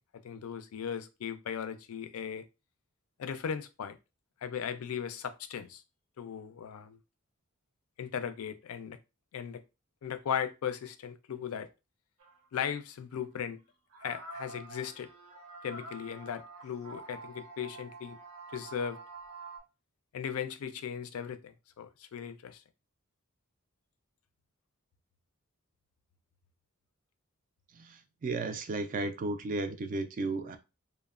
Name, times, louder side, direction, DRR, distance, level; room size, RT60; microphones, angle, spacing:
voice 1, 0.2-2.5 3.2-4.0 4.4-5.8 6.2-7.0 8.0-9.0 9.3-9.6 10.0-11.7 12.5-13.6 14.0-15.1 15.6-18.2 18.5-19.0 20.1-22.6, left 8 dB, 70° left, 0.4 m, -37 dB
sound 1, 12.2-12.4 13.1-13.2 13.9-19.6, right 3 dB, 75° right, 0.6 m, -47 dB
voice 2, 27.7-30.6, right 3 dB, 40° right, 0.3 m, -34 dB
3.0 x 2.0 x 2.3 m
head